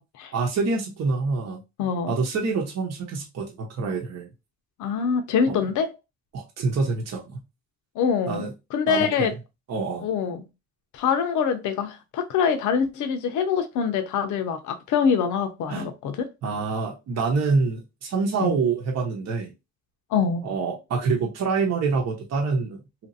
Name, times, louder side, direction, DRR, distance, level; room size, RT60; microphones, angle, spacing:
voice 1, 0.3-1.6 2.1-4.3 5.5-5.6 6.3-7.4 8.3-8.5 8.9-9.3 9.7-10.1 15.7-15.9 16.4-19.5 20.4-22.8, right 4 dB, 60° right, 0.9 m, -26 dB
voice 2, 1.8-2.1 4.8-5.9 8.0-9.3 10.0-10.4 10.9-16.1 18.4-18.6 20.1-20.4, left 6 dB, 80° left, 0.6 m, -24 dB
2.9 x 2.5 x 2.6 m
cardioid pair, 90°, 30 cm